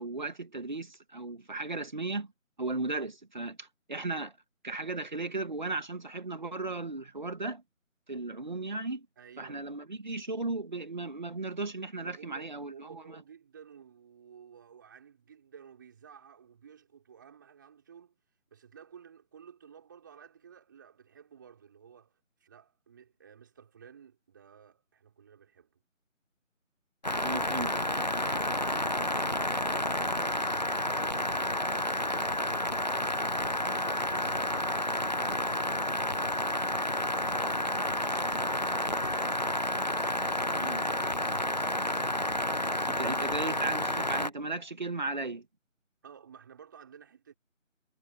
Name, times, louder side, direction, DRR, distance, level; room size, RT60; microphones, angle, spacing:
voice 1, 0.0-2.3 2.6-4.4 4.6-7.6 8.1-9.1 9.4-13.2 27.2-27.8 40.6-40.8 42.9-45.5, right 3 dB, 35° right, 2.5 m, -36 dB
voice 2, 9.2-9.7 12.0-18.2 18.5-25.8 28.0-30.5 31.0-34.4 34.9-36.7 37.5-39.0 46.0-47.3, right 7 dB, 15° right, 5.9 m, -54 dB
sound 1, 27.0-44.3, left 1 dB, 30° left, 1.0 m, -30 dB
figure-of-eight pair, 165°, 40 cm